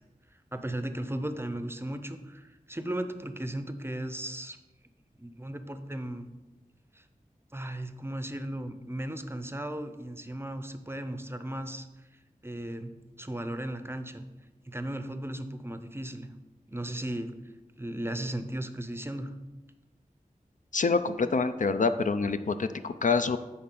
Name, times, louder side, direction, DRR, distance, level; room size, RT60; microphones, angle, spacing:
voice 1, 0.5-4.6 5.2-6.3 6.9-7.0 7.5-11.9 12.4-12.9 13.2-14.3 14.7-16.3 16.7-17.3 17.8-19.3, right 1 dB, 15° right, 9 dB, 0.5 m, -36 dB
voice 2, 20.7-23.4, left 4 dB, 60° left, 10 dB, 0.4 m, -26 dB
9.7 x 4.3 x 3.8 m, 1.1 s
wide cardioid pair, 55°, 15 cm